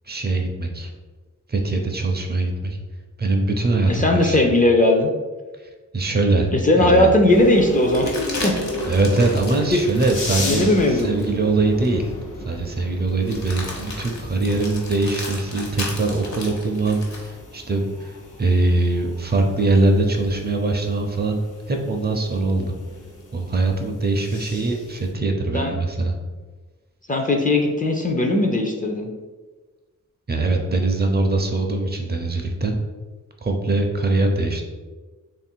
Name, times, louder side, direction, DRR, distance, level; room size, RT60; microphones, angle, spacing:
voice 1, 0.1-0.9 1.5-2.8 3.2-4.4 5.9-6.5 6.8-7.1 8.9-12.1 12.4-21.4 21.7-22.7 23.3-26.1 30.3-32.8 33.4-34.6, right 2 dB, 35° right, 3 dB, 0.4 m, -22 dB
voice 2, 3.8-5.1 6.5-8.1 8.4-8.5 9.6-9.8 10.4-11.2 25.5-25.7 27.1-29.1, left 2 dB, 25° left, 2 dB, 0.4 m, -18 dB
sound 1, 6.3-6.4 7.8-11.3 11.8-12.0 13.2-17.3 19.5-20.4, left 2 dB, 60° left, 1.0 m, -35 dB
sound 2, 7.3-25.1, left 1 dB, 85° left, 0.9 m, -34 dB
3.4 x 2.5 x 4.4 m, 1.3 s
wide cardioid pair, 150°, 30 cm